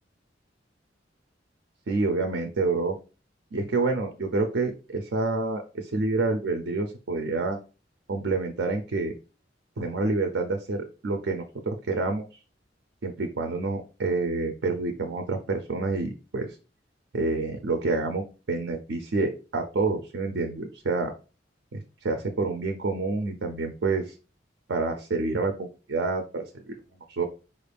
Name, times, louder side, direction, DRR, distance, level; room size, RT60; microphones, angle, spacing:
voice 1, 1.9-3.0 3.5-7.6 8.1-9.1 9.8-12.3 13.0-16.5 17.1-21.1 21.7-24.1 24.7-26.8 27.1-27.2, right 3 dB, 80° right, 5 dB, 0.6 m, -28 dB
4.4 x 2.5 x 3.4 m, 0.32 s
head